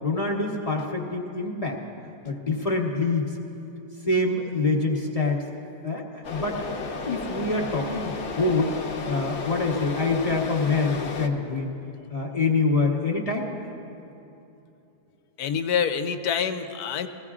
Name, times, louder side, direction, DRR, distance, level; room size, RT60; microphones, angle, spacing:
voice 1, 0.0-1.8 2.2-3.3 4.1-5.4 5.8-8.7 9.1-11.8 12.1-13.5, left 3 dB, 25° left, -2 dB, 1.1 m, -25 dB
sound 1, 6.2-11.3, left 4 dB, 50° left, 1.0 m, -33 dB
voice 2, 15.4-17.1, left 7 dB, 75° left, 8 dB, 1.1 m, -26 dB
21.0 x 15.5 x 2.4 m, 2.9 s
omnidirectional pair, 1.7 m